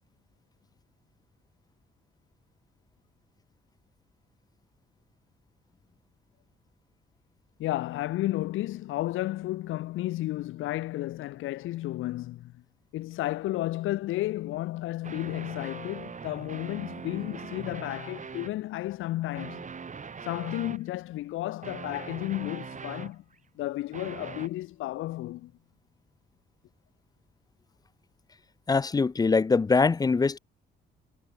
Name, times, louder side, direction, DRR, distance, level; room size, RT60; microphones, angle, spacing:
voice 1, 7.6-12.6 12.9-19.7 20.2-23.2 23.6-25.5, left 16 dB, 90° left, 2.0 m, -32 dB
sound 1, 15.0-18.6 19.3-20.9 21.6-23.3 23.9-24.5, right 5 dB, 40° right, 5.7 m, -41 dB
voice 2, 28.7-30.4, left 4 dB, 20° left, 0.4 m, -23 dB
cardioid pair, 90°, 20 cm